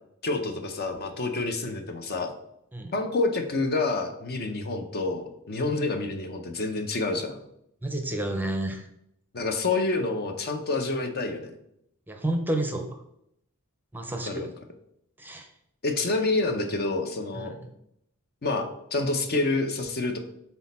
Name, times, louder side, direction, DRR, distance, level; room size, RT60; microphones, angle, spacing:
voice 1, 0.2-2.3 2.9-7.4 9.3-11.5 14.2-14.5 15.8-17.5 18.4-20.2, left 3 dB, 45° left, 6 dB, 0.7 m, -28 dB
voice 2, 7.8-8.9 12.1-12.9 13.9-14.3 15.2-15.5 17.3-17.6, right 1 dB, 10° right, 4 dB, 0.6 m, -30 dB
6.2 x 4.1 x 4.2 m, 0.77 s
head